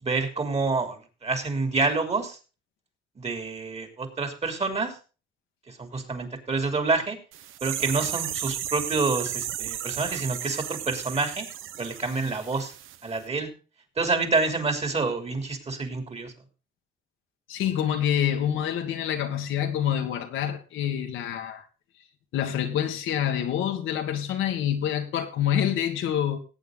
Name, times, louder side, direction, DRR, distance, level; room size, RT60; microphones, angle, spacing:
voice 1, 0.0-2.4 3.1-5.0 5.7-7.2 7.6-11.5 11.8-12.7 13.0-13.5 14.0-16.3, right 3 dB, 30° right, 3.3 m, -28 dB
sound 1, 7.3-13.0 13.2-13.3, right 11 dB, 85° right, 0.9 m, -34 dB
voice 2, 17.5-21.6 22.3-26.4, left 9 dB, 85° left, 1.7 m, -27 dB
18.0 x 8.5 x 3.9 m
cardioid pair, 90°, 20 cm